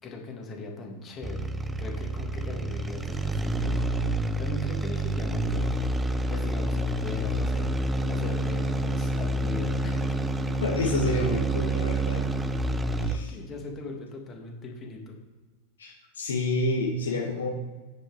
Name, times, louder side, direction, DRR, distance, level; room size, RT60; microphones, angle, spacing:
voice 1, 0.0-1.5 1.8-5.7 6.3-7.7 8.1-10.1 13.0-15.2, left 3 dB, 25° left, 1 dB, 2.5 m, -39 dB
sound 1, 1.2-13.3, right 1 dB, 10° right, 0.6 m, -28 dB
voice 2, 10.6-12.3 13.1-13.3 15.8-17.5, left 2 dB, 65° left, 0 dB, 1.7 m, -29 dB
9.6 x 6.8 x 5.1 m, 1.3 s
figure-of-eight pair, 90°, 0 cm